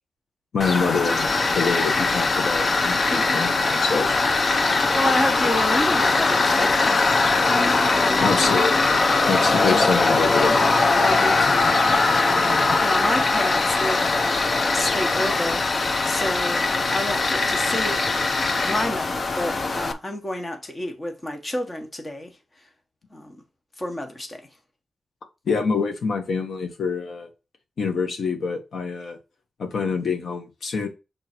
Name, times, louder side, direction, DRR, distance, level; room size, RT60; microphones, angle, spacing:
voice 1, 0.5-4.2 8.2-9.0 9.3-10.6 25.4-27.3 27.8-29.2 29.6-30.9, left 5 dB, 75° left, 1.3 m, -26 dB
Tools, 0.6-19.9, left 3 dB, 45° left, 0.7 m, -21 dB
voice 2, 4.7-7.1 7.5-8.7 10.9-11.8 12.2-12.6 12.8-15.6 16.0-18.0 18.6-22.3 23.1-23.4 23.8-24.4, left 1 dB, 25° left, 1.4 m, -29 dB
6.2 x 3.9 x 4.4 m
cardioid pair, 85°, 0 cm